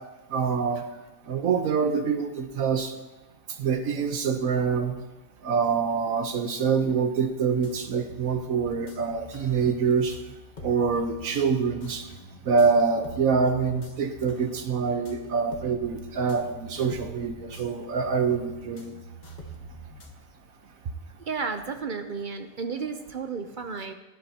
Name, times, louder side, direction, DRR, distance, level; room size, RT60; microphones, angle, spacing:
voice 1, 0.3-0.8 1.3-2.9 3.6-5.0 5.4-10.2 10.6-12.0 12.5-18.9, right 5 dB, 75° right, 7 dB, 1.3 m, -25 dB
sound 1, 7.6-20.1, right 1 dB, 35° left, 1.2 m, -45 dB
voice 2, 21.3-23.9, right 5 dB, 50° right, 7 dB, 0.6 m, -32 dB
16.5 x 11.0 x 2.8 m, 1.1 s
omnidirectional pair, 1.5 m